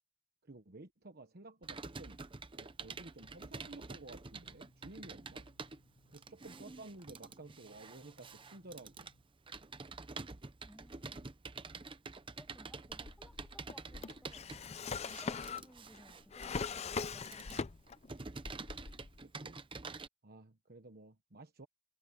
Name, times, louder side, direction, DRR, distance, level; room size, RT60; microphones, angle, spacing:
voice 1, 0.4-2.2 2.5-5.5 6.1-9.1 19.2-19.6 20.2-21.7, right 2 dB, 50° right, 1.2 m, -53 dB
Computer keyboard, 1.6-20.1, right 4 dB, 25° right, 0.8 m, -48 dB
sound 1, 3.9-9.3, equal, 80° left, 4.7 m, -69 dB
voice 2, 10.6-11.3 12.4-14.5 15.1-17.6, equal, 5° left, 1.8 m, -60 dB
Drawer open or close, 12.9-18.1 18.4-19.2, left 5 dB, 35° left, 0.5 m, -41 dB
open air
head